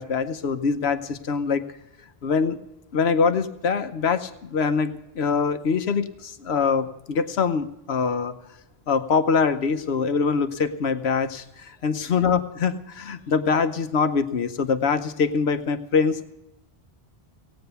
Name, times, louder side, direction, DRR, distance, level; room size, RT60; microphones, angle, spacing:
voice 1, 0.0-1.6 2.2-2.6 2.9-8.3 8.9-16.3, left 5 dB, 80° left, 10 dB, 1.1 m, -24 dB
17.5 x 9.1 x 6.8 m, 0.88 s
omnidirectional pair, 1.1 m